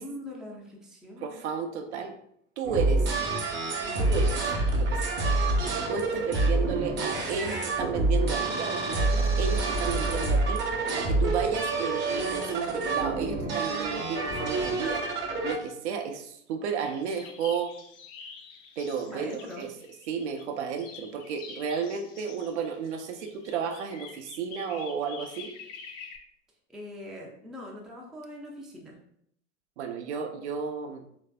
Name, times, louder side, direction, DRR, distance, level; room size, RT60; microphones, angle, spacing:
voice 1, 0.0-1.4 19.1-19.7 26.7-29.0, left 1 dB, ahead, -1 dB, 0.4 m, -42 dB
voice 2, 1.2-2.2 2.6-3.1 4.0-4.4 4.7-17.7 18.8-19.7 20.1-25.5 29.8-31.0, right 6 dB, 65° right, 5 dB, 0.5 m, -33 dB
sound 1, 2.6-15.5, right 2 dB, 30° right, 0.7 m, -27 dB
sound 2, 16.8-20.4 20.8-26.2, left 5 dB, 45° left, 0.6 m, -47 dB
3.2 x 2.6 x 2.2 m, 0.70 s
figure-of-eight pair, 80°, 37 cm